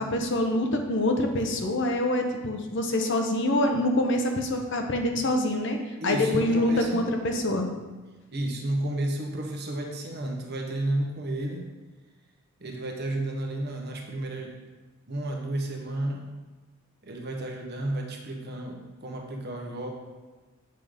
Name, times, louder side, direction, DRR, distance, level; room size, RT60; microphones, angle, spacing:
voice 1, 0.0-7.7, left 1 dB, 55° left, 4 dB, 0.8 m, -25 dB
voice 2, 6.0-7.0 8.3-11.6 12.6-14.6 15.1-16.2 17.0-19.9, right 1 dB, 50° right, 1 dB, 1.1 m, -32 dB
7.7 x 3.8 x 5.0 m, 1.3 s
head